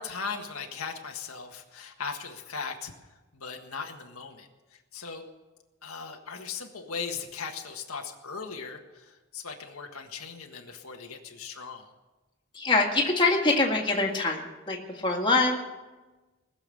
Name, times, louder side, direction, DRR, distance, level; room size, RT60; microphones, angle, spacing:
voice 1, 0.0-2.9 3.3-5.2 5.8-11.8, left 5 dB, 85° left, 3 dB, 1.6 m, -38 dB
voice 2, 12.5-15.6, left 3 dB, 20° left, -1 dB, 1.9 m, -24 dB
20.0 x 7.1 x 8.4 m, 1.2 s
head